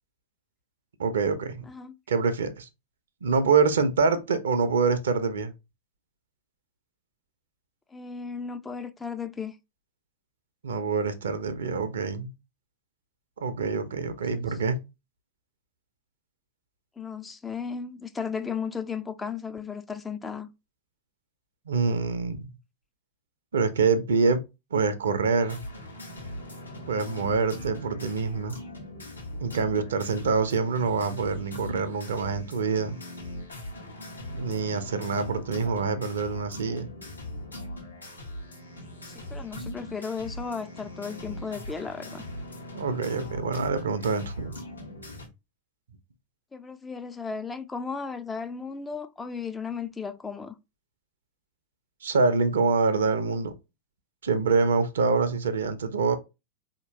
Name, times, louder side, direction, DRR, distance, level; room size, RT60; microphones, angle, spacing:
voice 1, 1.0-1.6 2.1-2.7 3.2-5.5 10.6-12.3 13.4-14.8 21.7-22.5 23.5-24.4 24.7-25.6 26.9-28.6 29.4-33.0 34.3-36.9 42.7-44.6 52.0-53.5 54.2-56.2, right 4 dB, 65° right, 0.6 m, -25 dB
voice 2, 7.9-9.6 14.3-14.5 17.0-20.5 39.1-42.2 46.5-50.6, left 5 dB, 15° left, 0.4 m, -35 dB
sound 1, 25.4-45.3, left 1 dB, 85° left, 1.1 m, -40 dB
4.2 x 2.9 x 2.8 m
figure-of-eight pair, 90°, 0 cm